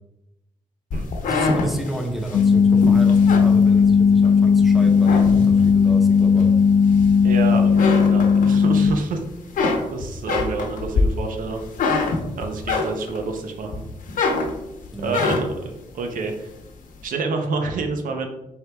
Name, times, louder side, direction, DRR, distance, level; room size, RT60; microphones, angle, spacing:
sound 1, 0.9-4.3 4.7-5.8 6.4-7.4 7.6-8.9 9.2-13.3 13.7-15.7, left 3 dB, 85° left, 0.8 m, -25 dB
voice 1, 1.2-6.5 11.9-12.2 14.9-15.2, right 1 dB, ahead, 2 dB, 0.6 m, -32 dB
sound 2, 2.3-8.9, left 6 dB, 65° left, 0.4 m, -16 dB
voice 2, 7.2-9.2 9.9-11.9 12.4-13.8 15.0-16.5 17.0-18.3, right 3 dB, 85° right, 4 dB, 0.7 m, -28 dB
4.4 x 3.5 x 3.4 m, 0.91 s
wide cardioid pair, 130°, 14 cm